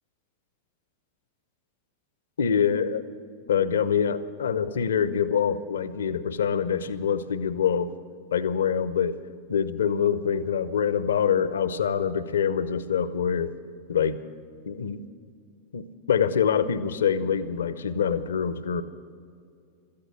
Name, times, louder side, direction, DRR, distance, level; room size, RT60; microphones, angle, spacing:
voice 1, 2.4-3.0 3.5-7.9 8.3-9.2 9.5-13.5 13.9-14.2 14.7-15.0 15.7-18.8, left 7 dB, 65° left, 14 dB, 0.8 m, -25 dB
17.5 x 13.5 x 6.2 m, 2.3 s
figure-of-eight pair, 90°, 0 cm